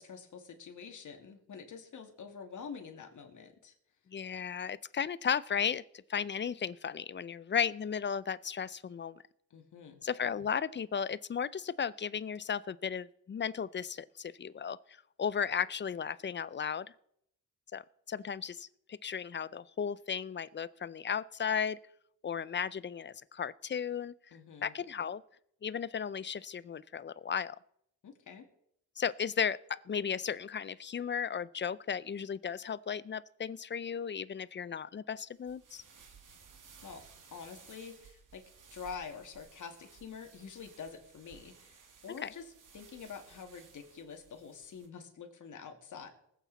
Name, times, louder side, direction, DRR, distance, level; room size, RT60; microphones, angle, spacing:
voice 1, 0.0-3.7 9.5-10.0 24.3-24.7 28.0-28.4 36.8-37.0 37.3-38.4 38.7-41.7 42.0-46.1, left 6 dB, 65° left, 4 dB, 2.3 m, -47 dB
voice 2, 4.1-5.8 6.1-9.2 10.0-14.8 15.2-16.9 17.7-21.8 22.2-24.1 24.6-25.2 25.6-27.6 29.0-35.8 42.2-42.3, left 7 dB, 35° left, 18 dB, 0.5 m, -35 dB
sound 1, 35.4-44.9, right 5 dB, 70° right, 2.2 m, -58 dB
19.5 x 8.3 x 4.1 m, 0.73 s
cardioid pair, 80°, 33 cm